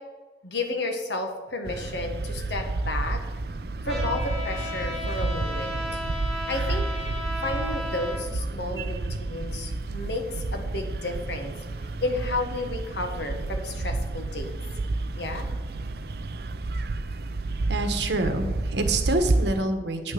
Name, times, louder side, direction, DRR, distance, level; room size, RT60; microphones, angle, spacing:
voice 1, 0.4-3.2 3.8-6.0 6.5-6.8 7.4-11.5 12.0-14.6 15.2-15.5, left 2 dB, 80° left, 4 dB, 1.6 m, -32 dB
sound 1, 1.6-19.6, right 2 dB, 60° right, 0.5 m, -30 dB
Trumpet, 3.9-8.2, left 1 dB, ahead, 3.0 m, -34 dB
voice 2, 17.7-20.1, right 2 dB, 85° right, 7 dB, 1.3 m, -27 dB
9.2 x 6.3 x 7.8 m, 1.2 s
head